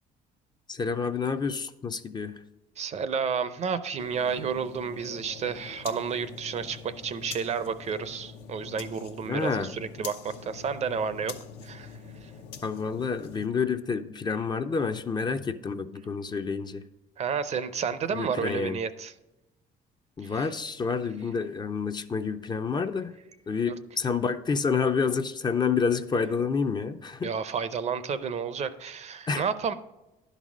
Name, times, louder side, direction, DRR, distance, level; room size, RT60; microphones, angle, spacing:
voice 1, 0.7-2.4 9.3-9.7 12.6-16.8 18.1-18.8 20.2-23.2 23.5-27.3 29.3-29.5, left 5 dB, 25° left, 8 dB, 0.5 m, -29 dB
voice 2, 2.8-11.3 11.6-11.9 17.2-19.1 20.3-20.5 23.7-23.8 27.2-29.7, right 6 dB, 40° right, 13 dB, 0.5 m, -31 dB
sound 1, 4.0-13.5, left 6 dB, 80° left, 0.8 m, -44 dB
11.0 x 4.1 x 6.1 m, 0.99 s
cardioid pair, 110°, 17 cm